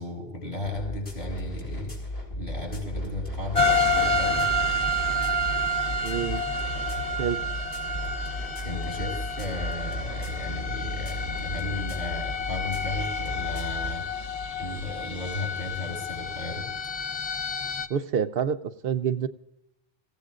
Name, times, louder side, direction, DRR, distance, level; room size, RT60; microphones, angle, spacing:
voice 1, 0.0-1.9 2.4-4.5 8.6-14.3 14.6-16.7, left 2 dB, 60° left, 2 dB, 7.0 m, -35 dB
sound 1, 0.6-14.0, equal, 80° left, 5.0 m, -35 dB
sound 2, 3.5-17.9, left 1 dB, 40° left, 0.9 m, -29 dB
voice 2, 6.0-6.4 7.2-7.4 17.9-19.3, right 8 dB, 70° right, 11 dB, 0.9 m, -27 dB
26.5 x 16.0 x 2.5 m, 0.88 s
omnidirectional pair, 1.0 m